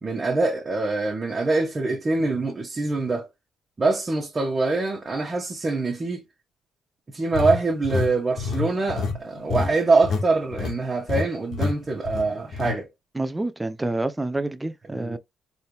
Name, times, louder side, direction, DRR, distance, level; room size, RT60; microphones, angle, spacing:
voice 1, 0.0-3.3 3.8-6.2 7.1-12.9 14.9-15.2, right 3 dB, 30° right, 1.5 m, -24 dB
sound 1, 7.3-10.3 10.5-10.8 11.1-11.2 11.5-11.7 12.1-12.7, left 4 dB, 70° left, 1.5 m, -27 dB
voice 2, 13.1-15.2, right 2 dB, 15° right, 0.6 m, -28 dB
4.1 x 3.8 x 2.3 m
cardioid pair, 90°, 0 cm